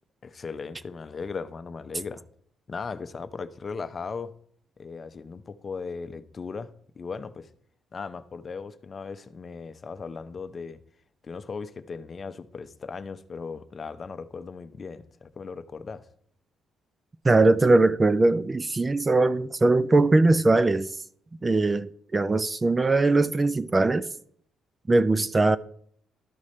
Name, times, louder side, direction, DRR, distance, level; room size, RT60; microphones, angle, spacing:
voice 1, 0.2-2.2 2.7-4.3 4.8-7.5 7.9-10.8 11.2-16.1, left 5 dB, 40° left, 0.6 m, -37 dB
voice 2, 17.2-20.9 21.4-24.1 24.9-25.6, right 2 dB, 25° right, 0.4 m, -21 dB
12.5 x 4.9 x 4.3 m
cardioid pair, 90°, 0 cm